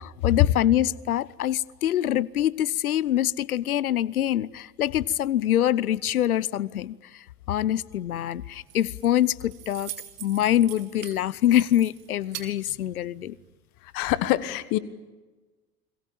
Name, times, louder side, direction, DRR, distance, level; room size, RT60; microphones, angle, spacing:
voice 1, 0.0-9.9 10.2-13.4, left 12 dB, 70° left, 0.9 m, -25 dB
Keys jangling, 8.4-13.5, right 13 dB, 50° right, 4.0 m, -44 dB
voice 2, 13.9-14.8, left 16 dB, 50° left, 1.6 m, -25 dB
29.5 x 22.5 x 8.9 m
figure-of-eight pair, 75°, 45 cm